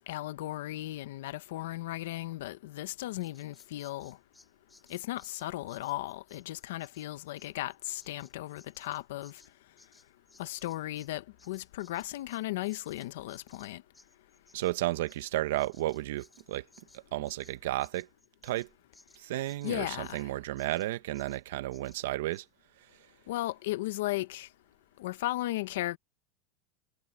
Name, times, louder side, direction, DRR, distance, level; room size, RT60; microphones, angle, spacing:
voice 1, 0.1-4.2 4.9-9.4 10.4-13.8 19.6-20.3 23.3-24.5 25.0-26.0, left 16 dB, 80° left, 0.9 m, -36 dB
Bird vocalization bird call bird song, 3.2-11.1 11.4-20.3 20.6-20.9 21.1-21.4 21.7-22.0 22.3-22.4, left 2 dB, 5° left, 4.0 m, -61 dB
voice 2, 14.5-16.6 17.1-18.1 18.4-18.7 19.2-22.4, right 15 dB, 75° right, 1.2 m, -33 dB
supercardioid pair, 165°, 0 cm